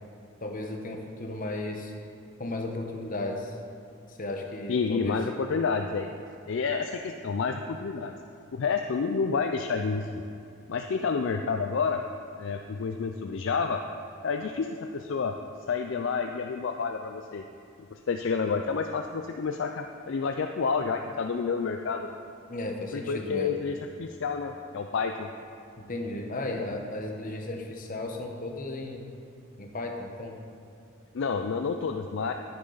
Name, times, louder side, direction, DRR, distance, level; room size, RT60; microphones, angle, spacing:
voice 1, 0.4-1.9 2.4-3.6 4.1-5.2 22.5-23.6 25.9-29.1 29.6-30.4, left 2 dB, 40° left, 3 dB, 0.9 m, -35 dB
voice 2, 4.7-6.1 6.5-8.1 8.5-10.2 10.7-12.0 12.4-13.8 14.2-15.3 15.7-17.4 17.9-22.1 22.9-25.3 31.1-32.3, left 5 dB, 55° left, 5 dB, 0.4 m, -29 dB
9.7 x 9.7 x 4.0 m, 2.5 s
head